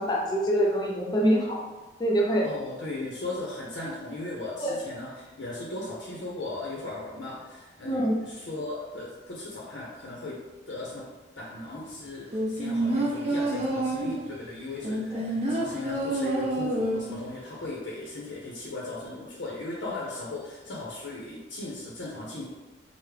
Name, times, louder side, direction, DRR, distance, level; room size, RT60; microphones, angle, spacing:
voice 1, 0.0-1.6 2.0-2.5 4.6-4.7 7.8-8.2 15.1-15.2, equal, 25° left, -3 dB, 0.5 m, -25 dB
voice 2, 2.4-10.4 10.7-11.1 11.4-22.5, left 2 dB, 75° left, -4 dB, 0.6 m, -37 dB
sound 1, 12.3-14.3 14.8-17.2 17.6-17.7, right 1 dB, 35° right, 0.5 m, -28 dB
3.4 x 2.0 x 3.2 m, 1.2 s
head